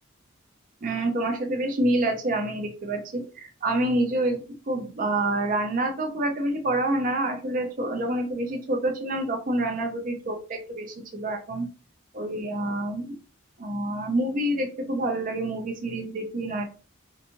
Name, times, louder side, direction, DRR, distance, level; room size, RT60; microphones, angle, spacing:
voice 1, 0.8-4.4 4.7-11.7 12.1-13.2 13.6-16.7, right 1 dB, 40° right, 3 dB, 0.4 m, -27 dB
2.6 x 2.3 x 2.8 m, 0.34 s
head